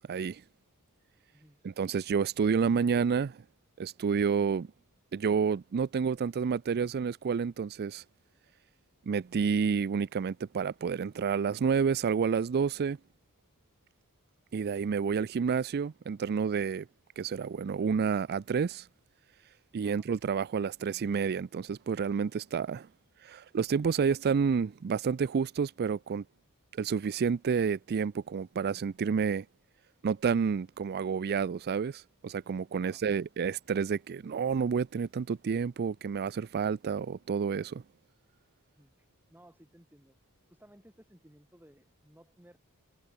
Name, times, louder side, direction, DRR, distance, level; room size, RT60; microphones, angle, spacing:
voice 1, 0.1-0.4 1.6-3.4 3.8-4.7 5.1-8.0 9.1-13.0 14.5-16.9 17.2-18.8 19.7-22.9 23.2-26.2 26.7-29.4 30.0-37.8, right 6 dB, 45° right, 0.4 m, -29 dB
voice 2, 32.7-33.0 38.7-40.2 40.5-42.6, right 1 dB, 10° right, 7.4 m, -59 dB
head